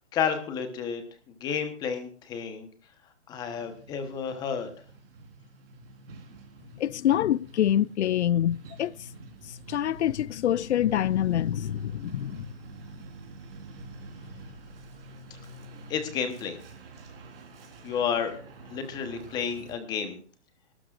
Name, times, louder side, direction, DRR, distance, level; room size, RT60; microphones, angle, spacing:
voice 1, 0.1-1.0 1.4-2.7 3.3-4.7 15.9-16.6 17.8-18.4 18.7-20.2, left 7 dB, 10° left, 1.1 m, -31 dB
Truck, 3.5-19.7, right 3 dB, 55° right, 4.2 m, -47 dB
voice 2, 6.8-9.0 9.7-12.5, left 11 dB, 75° left, 0.5 m, -26 dB
23.0 x 12.5 x 2.5 m
hypercardioid pair, 160°, 35 cm